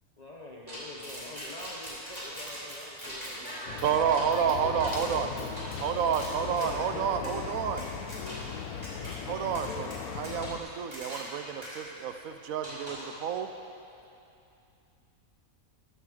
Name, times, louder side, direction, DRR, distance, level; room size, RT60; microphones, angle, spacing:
voice 1, 0.2-5.5 6.4-7.5, left 2 dB, 35° left, -2 dB, 0.8 m, -45 dB
sound 1, 0.7-6.8 7.2-7.4 7.8-8.6 8.8-9.2 9.6-11.4 11.6-11.8 12.6-13.1, equal, 25° right, 2.8 m, -42 dB
voice 2, 3.1-7.0 7.9-9.5 11.4-11.5, equal, 5° left, -4 dB, 1.3 m, -49 dB
sound 2, 3.7-10.6, left 7 dB, 80° left, 1.2 m, -39 dB
voice 3, 3.8-5.3 5.8-7.8 9.2-13.5, right 7 dB, 75° right, 8 dB, 1.0 m, -30 dB
14.0 x 7.8 x 4.8 m, 2.7 s
omnidirectional pair, 1.6 m